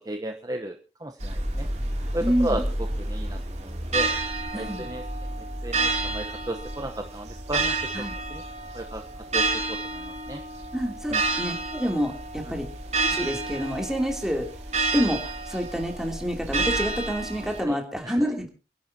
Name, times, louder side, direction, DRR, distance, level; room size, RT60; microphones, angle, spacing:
voice 1, 0.0-1.7 2.1-2.6 3.0-4.1 4.5-5.0 5.6-7.8 8.3-8.4 8.7-9.0 9.3-10.4 11.1-11.2 12.5-12.6 17.7-17.8 18.0-18.3, right 1 dB, 20° right, 5 dB, 0.9 m, -34 dB
sound 1, 1.2-17.6, right 2 dB, 40° right, 2.9 m, -30 dB
voice 2, 2.2-2.6 4.5-4.9 7.9-8.1 10.7-12.7 13.0-14.5 14.9-18.5, equal, 5° right, 2 dB, 3.0 m, -28 dB
28.0 x 11.0 x 2.8 m, 0.34 s
head